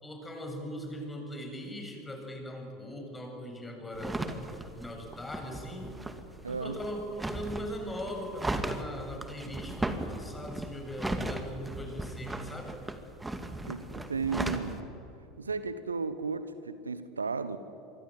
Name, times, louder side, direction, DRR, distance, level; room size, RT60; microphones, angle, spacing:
voice 1, 0.0-4.2 4.8-5.9 6.5-12.8, equal, 15° left, 7.5 m, -40 dB
sound 1, 3.9-14.8, right 2 dB, 10° right, 2.4 m, -37 dB
voice 2, 6.4-6.8 13.6-14.9 15.4-17.6, right 4 dB, 85° right, 1.2 m, -34 dB
26.5 x 23.5 x 9.5 m
figure-of-eight pair, 75°, 0 cm